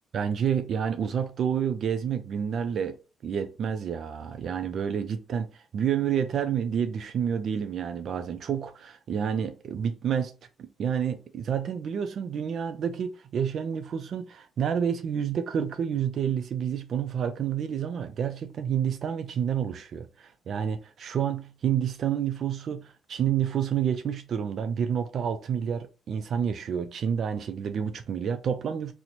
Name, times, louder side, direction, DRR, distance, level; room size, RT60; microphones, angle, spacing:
voice 1, 0.1-3.0 3.2-10.3 10.6-28.9, right 8 dB, 60° right, 0.3 m, -29 dB
2.9 x 2.0 x 4.0 m
cardioid pair, 90°, 0 cm